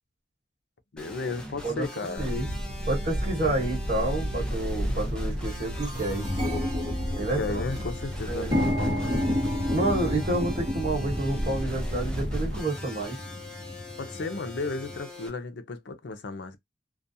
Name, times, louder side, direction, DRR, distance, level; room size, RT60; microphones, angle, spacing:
voice 1, 0.9-2.4 7.2-9.2 14.0-16.6, left 3 dB, 70° left, 0.5 m, -34 dB
sound 1, 1.0-15.3, left 1 dB, 5° left, 0.7 m, -43 dB
sound 2, 2.1-12.6, equal, 35° left, 1.0 m, -33 dB
voice 2, 2.8-6.3 7.2-7.6 8.3-8.5 9.7-13.2, right 2 dB, 45° right, 1.2 m, -29 dB
sound 3, 3.4-3.5 4.3-4.5 4.9-5.0 5.3-15.0, left 1 dB, 20° right, 0.9 m, -32 dB
2.4 x 2.2 x 2.6 m
head